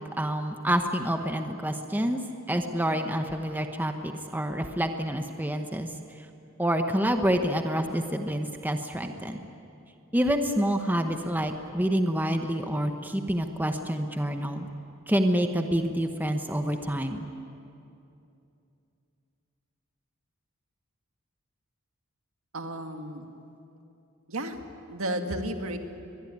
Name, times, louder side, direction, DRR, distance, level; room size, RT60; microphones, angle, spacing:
voice 1, 0.2-2.2 2.5-5.9 6.6-9.4 10.1-14.7 15.1-17.3, equal, 10° right, 5 dB, 1.0 m, -27 dB
voice 2, 22.5-23.3 24.3-24.6 24.9-25.8, right 1 dB, 75° right, 5 dB, 1.9 m, -32 dB
22.5 x 22.0 x 9.6 m, 2.7 s
head